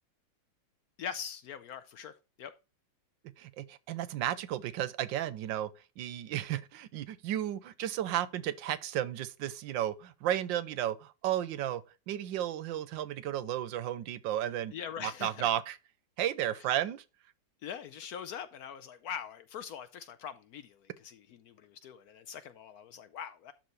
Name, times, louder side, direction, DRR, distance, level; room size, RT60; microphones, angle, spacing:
voice 1, 1.0-2.1 2.4-2.5 14.7-15.5 17.6-23.5, left 8 dB, 70° left, 0.9 m, -42 dB
voice 2, 3.4-5.7 6.0-14.7 15.0-15.8 16.2-17.0, right 12 dB, 90° right, 1.4 m, -33 dB
12.0 x 4.1 x 3.1 m
omnidirectional pair, 2.0 m